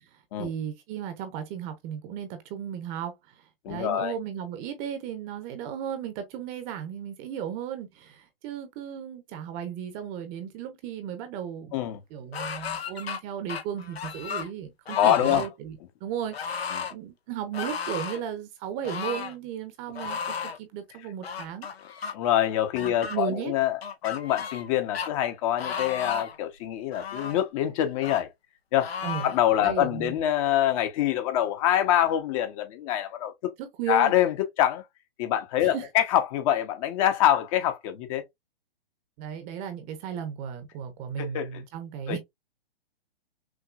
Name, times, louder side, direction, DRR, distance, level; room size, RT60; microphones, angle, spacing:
voice 1, 0.1-11.8 12.1-21.7 22.8-23.5 29.0-29.3 29.6-30.1 33.6-34.1 35.6-35.9 39.2-42.2, right 9 dB, 25° right, 0.9 m, -35 dB
voice 2, 3.6-4.2 11.7-12.0 15.0-15.4 16.7-16.9 22.1-28.3 28.7-28.9 29.2-33.5 33.9-34.8 35.2-38.2 41.2-41.6 42.1-42.2, left 11 dB, 35° left, 0.9 m, -25 dB
sound 1, 12.3-13.2 13.5-14.5 14.9-15.5 16.3-16.9 17.5-18.2 18.8-19.3 20.0-20.6 21.2-22.1 22.8-23.2 23.8-24.7 24.9-25.1 25.6-26.4 26.9-27.4 28.0-28.2 28.8-29.4, left 6 dB, 80° left, 1.1 m, -34 dB
6.1 x 2.5 x 2.4 m
hypercardioid pair, 135°, 30 cm